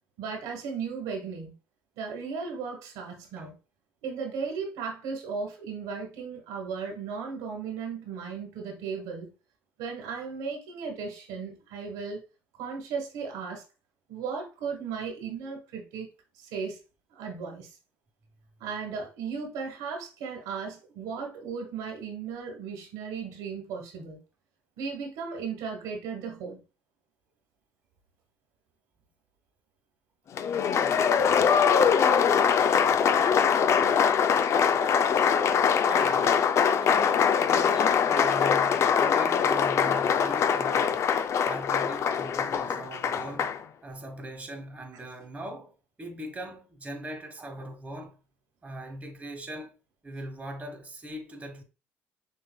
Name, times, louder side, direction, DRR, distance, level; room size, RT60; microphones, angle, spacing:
voice 1, 0.2-1.5 2.0-3.6 4.0-9.3 9.8-12.2 12.6-13.6 14.1-16.1 16.4-16.8 17.1-17.7 18.6-24.2 24.8-26.6, right 5 dB, 85° right, 1.4 m, -36 dB
Applause, 30.4-43.6, left 7 dB, 50° left, 0.4 m, -23 dB
voice 2, 35.8-36.4 36.8-41.1 41.4-43.5 43.8-45.7 46.0-48.2 48.6-49.8 50.0-51.6, right 1 dB, 20° right, 1.2 m, -40 dB
6.4 x 2.7 x 2.2 m
supercardioid pair, 90°, 6 cm